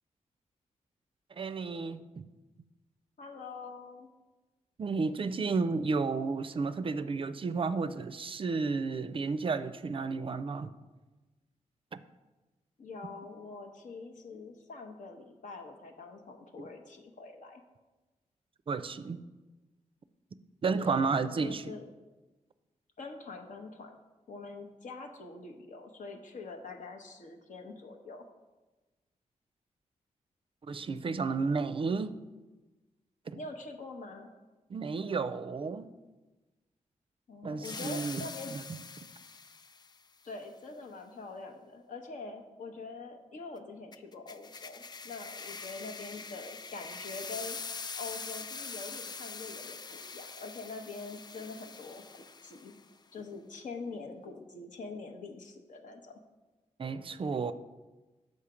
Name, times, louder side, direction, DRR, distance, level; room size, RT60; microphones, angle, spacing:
voice 1, 1.3-2.2 4.8-10.7 11.9-12.0 16.6-16.7 18.7-19.2 20.6-21.7 30.7-32.2 33.3-33.4 34.7-35.9 37.4-38.2 38.5-38.6 56.8-57.5, right 4 dB, 45° right, 12 dB, 0.4 m, -32 dB
voice 2, 3.2-4.1 12.8-17.6 20.9-21.1 21.4-21.8 23.0-24.0 24.3-28.2 33.3-34.3 37.3-38.6 40.2-47.6 47.9-52.7 53.1-56.2, left 3 dB, 75° left, 4 dB, 0.9 m, -44 dB
sound 1, 37.6-40.0 43.9-52.9, left 4 dB, 35° left, 0.3 m, -43 dB
6.4 x 5.6 x 4.9 m, 1.2 s
cardioid pair, 70°, 13 cm